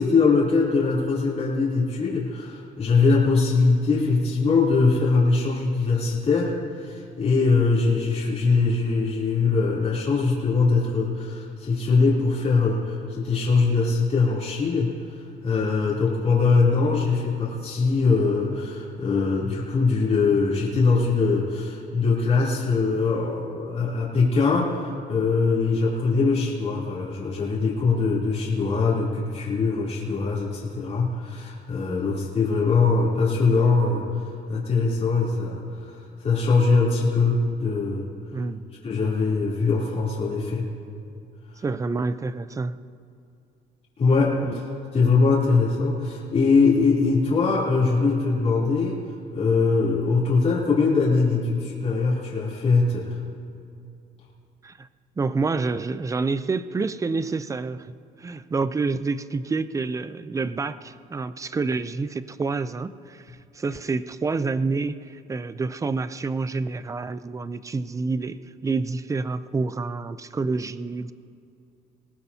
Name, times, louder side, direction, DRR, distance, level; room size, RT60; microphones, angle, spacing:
voice 1, 0.0-38.1 38.8-40.7 44.0-44.6 44.9-49.0 49.3-53.2, left 4 dB, 40° left, -7 dB, 3.2 m, -22 dB
voice 2, 38.3-38.6 41.6-42.8 44.4-44.6 54.6-54.9 55.2-57.9 58.2-71.1, right 4 dB, 20° right, 14 dB, 0.5 m, -28 dB
20.5 x 17.5 x 2.8 m, 2.5 s
cardioid pair, 110°, 17 cm